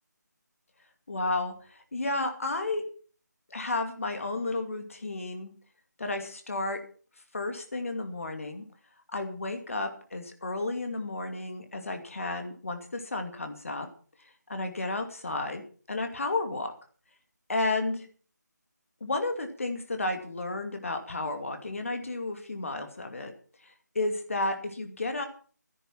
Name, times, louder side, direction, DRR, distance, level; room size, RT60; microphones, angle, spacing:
voice 1, 1.1-2.8 3.5-5.5 6.0-6.8 7.3-8.6 9.1-13.9 14.5-15.6 15.9-16.7 17.5-18.1 19.0-23.3 23.6-25.3, left 2 dB, 45° left, 6 dB, 2.4 m, -32 dB
12.5 x 10.5 x 5.9 m, 0.42 s
figure-of-eight pair, 160°, 10 cm